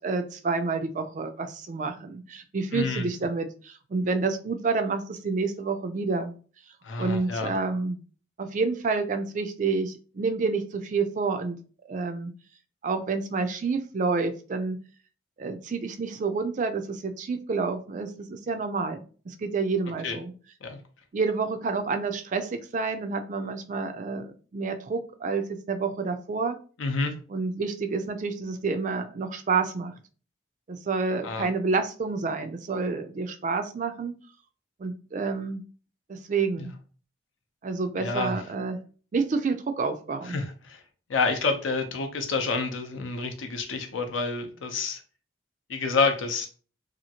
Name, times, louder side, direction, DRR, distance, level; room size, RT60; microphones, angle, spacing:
voice 1, 0.0-6.3 7.0-8.0 8.4-11.6 11.9-12.3 12.8-14.8 15.4-20.3 21.1-26.6 27.3-29.9 30.7-34.1 34.8-35.6 36.1-36.7 37.6-38.8 39.1-40.4, right 4 dB, 40° right, 8 dB, 0.3 m, -29 dB
voice 2, 2.7-3.1 6.8-7.5 20.0-20.2 20.6-20.8 26.8-27.1 31.2-31.5 36.6-36.7 38.0-38.4 40.2-40.8 41.1-45.0 45.7-46.5, left 4 dB, 80° left, 5 dB, 0.6 m, -28 dB
2.8 x 2.4 x 2.8 m, 0.39 s
head